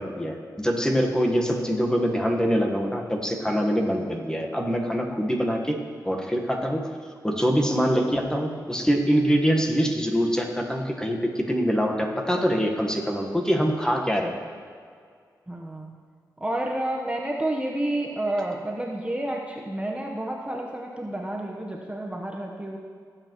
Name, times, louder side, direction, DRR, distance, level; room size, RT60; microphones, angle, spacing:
voice 1, 0.0-5.8 6.0-6.8 7.2-14.3, equal, 10° left, 1 dB, 1.4 m, -24 dB
voice 2, 15.5-15.9 16.4-22.8, right 1 dB, 15° right, -1 dB, 1.1 m, -30 dB
17.5 x 7.9 x 3.1 m, 2.1 s
cardioid pair, 65°, 7 cm